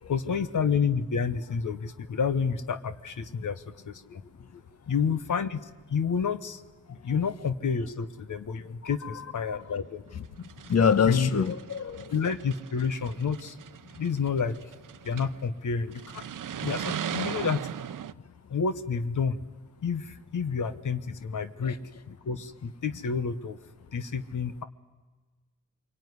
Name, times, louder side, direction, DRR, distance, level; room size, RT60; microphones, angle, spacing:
voice 1, 0.1-4.2 4.9-6.6 6.9-10.0 11.1-11.3 12.1-13.6 14.0-14.6 15.0-16.2 16.6-17.6 18.5-19.4 19.8-21.8 22.1-23.6 23.9-24.6, left 6 dB, 70° left, 10 dB, 1.2 m, -29 dB
sound 1, 9.6-9.7 10.3-15.4 15.9-18.1, right 9 dB, 80° right, 0.7 m, -38 dB
voice 2, 10.7-12.3 21.6-21.8, left 6 dB, 55° left, 12 dB, 1.1 m, -25 dB
24.5 x 23.5 x 9.7 m, 1.3 s
wide cardioid pair, 90°, 31 cm